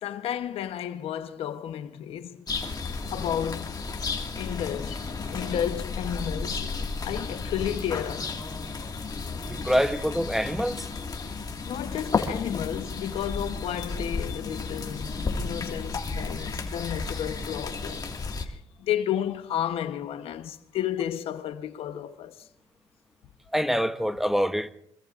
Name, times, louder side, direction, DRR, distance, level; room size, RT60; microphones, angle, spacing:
voice 1, 0.0-2.4 3.1-3.8 4.3-6.7 7.0-8.3 11.7-18.1 18.4-22.3, left 10 dB, 70° left, 1.0 m, -32 dB
sound 1, 2.5-18.5, left 4 dB, 40° left, 2.0 m, -33 dB
voice 2, 9.5-10.9 23.5-24.7, equal, 5° right, 0.9 m, -25 dB
25.0 x 22.5 x 2.5 m
supercardioid pair, 75°, 10 cm